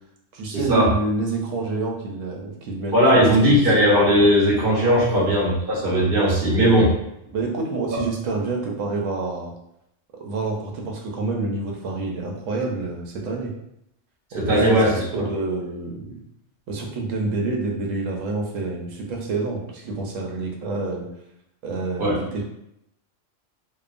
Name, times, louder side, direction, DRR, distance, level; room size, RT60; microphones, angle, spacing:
voice 1, 0.3-3.9 5.1-5.3 7.3-9.5 10.2-13.5 14.3-16.2 16.7-21.1 21.6-22.4, right 3 dB, 80° right, 0 dB, 1.0 m, -28 dB
voice 2, 2.9-6.9 14.3-15.2 22.0-22.1, equal, 50° right, -6 dB, 1.0 m, -18 dB
2.8 x 2.1 x 2.4 m, 0.79 s
omnidirectional pair, 1.3 m